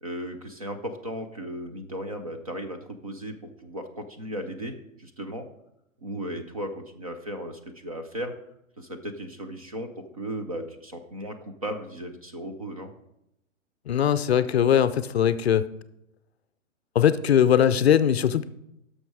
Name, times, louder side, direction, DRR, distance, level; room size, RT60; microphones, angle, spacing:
voice 1, 0.0-3.3 3.6-5.5 6.0-8.3 8.8-11.4 11.6-12.9, right 1 dB, 30° right, 6 dB, 0.5 m, -36 dB
voice 2, 13.9-15.7 16.9-18.5, left 9 dB, 55° left, 14 dB, 0.5 m, -20 dB
11.5 x 6.4 x 4.7 m, 0.83 s
hypercardioid pair, 170°, 40 cm